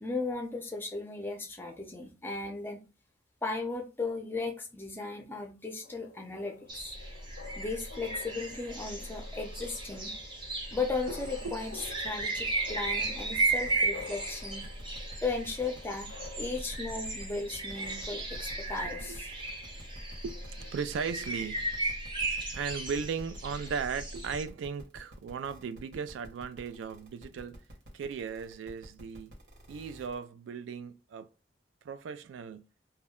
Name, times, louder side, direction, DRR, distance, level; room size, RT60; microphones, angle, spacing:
voice 1, 0.0-2.8 3.4-6.9 7.6-10.1 10.7-14.7 15.2-19.3, left 3 dB, 10° left, 0.5 m, -36 dB
sound 1, 5.8-20.8, left 5 dB, 70° left, 0.3 m, -51 dB
sound 2, 6.7-24.4, right 2 dB, 25° right, 0.7 m, -35 dB
sound 3, 10.7-30.2, equal, 60° right, 1.0 m, -52 dB
voice 2, 11.4-11.9 18.9-19.2 20.2-21.8 22.5-27.6 27.9-29.3 29.7-31.3 31.8-32.7, right 6 dB, 90° right, 0.3 m, -37 dB
2.2 x 2.1 x 3.5 m
head